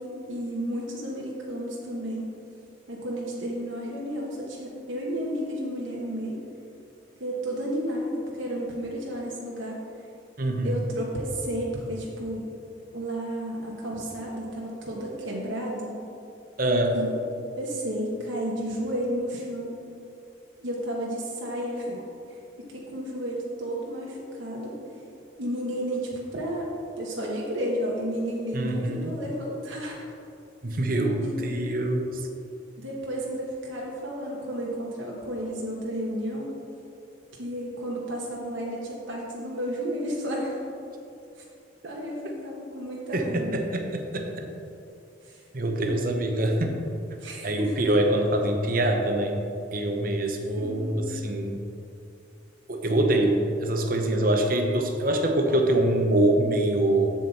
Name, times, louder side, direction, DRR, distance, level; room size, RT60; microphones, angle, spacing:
voice 1, 0.0-2.3 2.9-6.4 7.2-9.8 10.6-12.5 12.9-16.0 16.9-17.1 17.6-19.7 20.6-22.0 22.7-24.7 25.4-26.7 27.0-30.0 30.7-30.8 31.2-31.5 32.8-36.5 37.4-40.6 41.8-43.6 45.2-45.4 45.8-46.1 47.2-47.7 50.6-51.1, equal, 80° right, -3 dB, 1.2 m, -32 dB
voice 2, 10.4-10.8 16.6-16.9 28.5-29.1 30.6-32.2 43.1-44.4 45.5-46.8 47.4-49.4 49.7-51.6 52.7-57.1, right 1 dB, 45° right, 4 dB, 0.8 m, -24 dB
7.6 x 7.4 x 4.1 m, 2.7 s
head